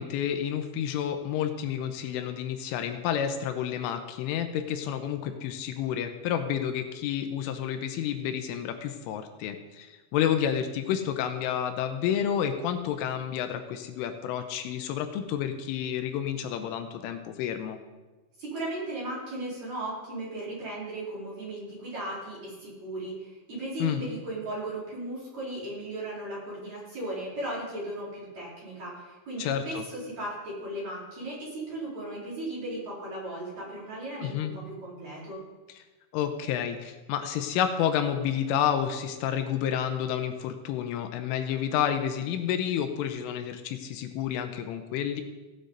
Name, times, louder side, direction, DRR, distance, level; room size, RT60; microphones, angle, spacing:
voice 1, 0.0-17.8 23.8-24.0 29.4-29.8 34.2-34.5 36.1-45.2, left 9 dB, 85° left, 7 dB, 3.1 m, -30 dB
voice 2, 18.4-35.4, right 1 dB, 35° right, -8 dB, 4.9 m, -36 dB
16.0 x 8.1 x 4.0 m, 1.2 s
omnidirectional pair, 5.8 m